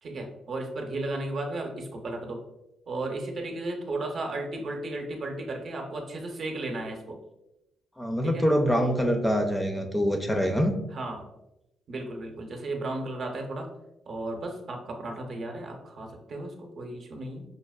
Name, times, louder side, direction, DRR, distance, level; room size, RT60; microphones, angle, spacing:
voice 1, 0.0-2.4 2.9-7.2 8.2-8.5 10.9-11.3 11.9-13.7 14.1-17.4, right 2 dB, 55° right, 2 dB, 0.7 m, -34 dB
voice 2, 8.0-10.7, equal, 10° left, 4 dB, 0.4 m, -25 dB
5.2 x 2.1 x 2.3 m, 0.93 s
cardioid pair, 90°, 0 cm